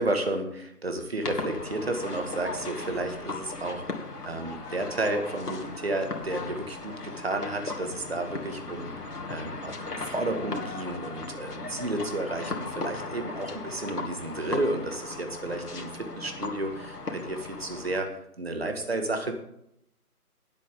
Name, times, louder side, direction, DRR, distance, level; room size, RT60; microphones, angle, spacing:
voice 1, 0.0-3.8 4.2-18.1 18.4-19.3, right 2 dB, 40° right, 5 dB, 1.9 m, -32 dB
sound 1, 1.2-18.0, left 3 dB, 80° left, 2.6 m, -37 dB
sound 2, 3.8-8.6, left 3 dB, 25° left, 2.8 m, -49 dB
18.5 x 8.3 x 3.8 m, 0.76 s
figure-of-eight pair, 170°, 46 cm